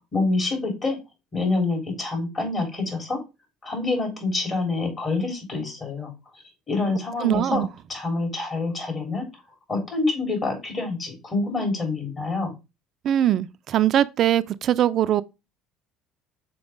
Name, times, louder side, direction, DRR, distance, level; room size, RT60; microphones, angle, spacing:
voice 1, 0.1-1.0 1.3-3.2 3.6-6.1 6.7-7.6 7.9-9.2 9.7-12.5, left 3 dB, 35° left, 3.6 m, -26 dB
voice 2, 7.2-7.7 13.0-15.2, right 11 dB, 55° right, 0.3 m, -21 dB
6.1 x 4.6 x 3.6 m
hypercardioid pair, 75°, 0 cm